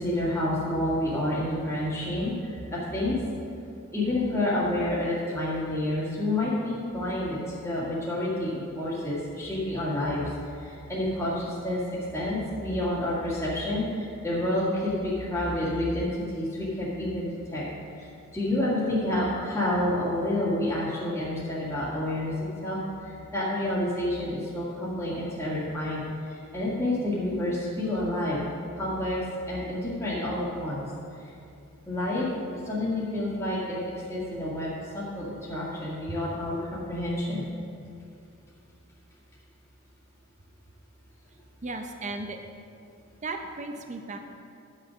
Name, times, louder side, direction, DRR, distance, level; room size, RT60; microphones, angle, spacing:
voice 1, 0.0-3.2 3.9-10.3 10.6-17.7 18.0-22.3 22.6-28.4 28.7-29.2 29.5-30.8 31.1-31.3 31.9-33.8 34.1-37.5, left 1 dB, 15° left, -9 dB, 1.9 m, -29 dB
voice 2, 41.6-42.4 43.2-44.2, right 2 dB, 35° right, 5 dB, 0.7 m, -35 dB
10.5 x 6.5 x 6.3 m, 2.6 s
head